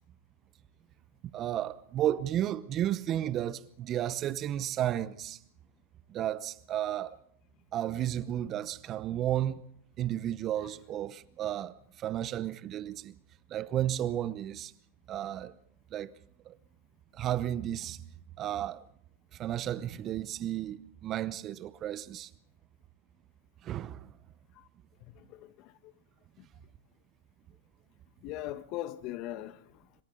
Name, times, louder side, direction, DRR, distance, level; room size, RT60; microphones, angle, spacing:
voice 1, 1.3-5.4 6.1-7.2 7.7-9.6 10.0-13.2 13.5-14.7 15.1-15.5 15.9-16.1 16.5-16.6 17.1-18.0 18.4-18.8 19.3-22.3 23.6-24.1, right 12 dB, 35° right, 0.9 m, -33 dB
voice 2, 25.0-25.9 26.4-26.5 28.2-29.9, left 14 dB, 45° left, 1.4 m, -41 dB
26.5 x 25.0 x 3.9 m
hypercardioid pair, 105°, 0 cm